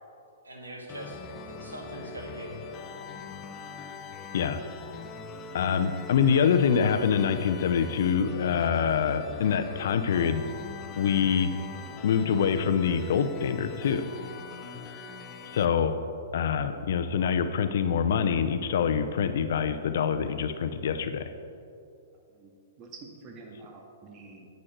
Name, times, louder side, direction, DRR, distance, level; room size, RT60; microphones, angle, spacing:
voice 1, 0.4-2.8, right 1 dB, 90° right, 0 dB, 2.0 m, -42 dB
sound 1, 0.9-15.7, left 5 dB, 30° left, 0.7 m, -42 dB
voice 2, 5.5-10.4 11.0-11.5 12.0-14.0 15.5-15.9 16.3-21.2, left 7 dB, 60° left, 9 dB, 0.7 m, -25 dB
voice 3, 22.3-24.5, right 3 dB, 35° right, 2 dB, 1.8 m, -48 dB
9.8 x 9.4 x 4.5 m, 2.6 s
hypercardioid pair, 120°, 0 cm